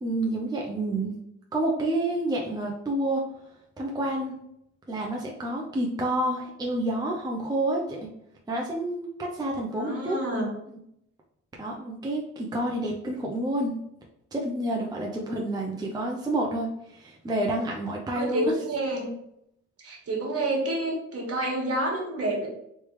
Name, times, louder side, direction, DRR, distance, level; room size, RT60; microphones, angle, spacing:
voice 1, 0.0-1.1 1.5-3.2 3.8-4.3 4.9-8.0 8.5-10.2 11.6-13.8 14.3-18.5, right 1 dB, 15° right, -1 dB, 0.6 m, -29 dB
voice 2, 9.7-10.5 15.2-15.4 18.1-19.1 19.8-22.5, right 1 dB, 50° right, -1 dB, 1.5 m, -29 dB
3.3 x 3.2 x 3.1 m, 0.77 s
cardioid pair, 90°, 30 cm